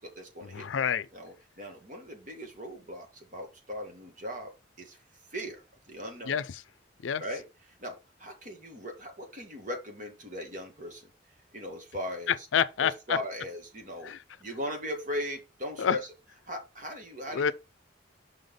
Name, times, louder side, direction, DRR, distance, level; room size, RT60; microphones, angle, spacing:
voice 1, 0.0-0.7 1.1-4.5 4.8-5.0 5.3-6.4 7.2-11.1 11.5-12.5 12.8-14.1 14.4-16.1 16.5-17.5, equal, 40° right, 1.6 m, -39 dB
voice 2, 0.5-1.1 6.3-6.4 7.0-7.2 12.3-13.2 14.0-14.2 15.8-16.0 17.3-17.5, left 7 dB, 85° left, 0.4 m, -27 dB
5.6 x 3.9 x 5.2 m
head